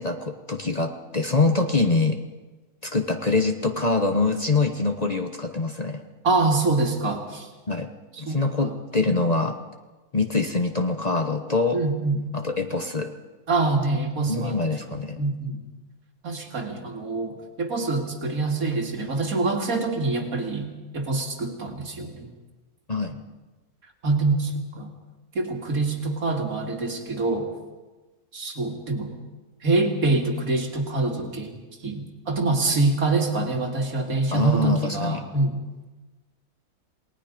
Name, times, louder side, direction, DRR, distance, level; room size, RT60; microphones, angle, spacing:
voice 1, 0.0-2.2 2.8-6.0 7.7-7.9 8.2-9.6 10.1-11.8 12.3-13.1 14.3-15.2 22.9-23.1 34.3-35.2, left 3 dB, 30° left, 6 dB, 1.1 m, -24 dB
voice 2, 6.2-7.5 8.2-8.7 9.1-9.2 11.7-12.2 13.5-14.6 15.2-15.6 16.2-22.3 24.0-24.9 25.3-27.5 28.3-29.1 29.6-35.6, right 3 dB, 75° right, 3 dB, 2.7 m, -25 dB
28.5 x 19.0 x 5.2 m, 1.2 s
omnidirectional pair, 1.5 m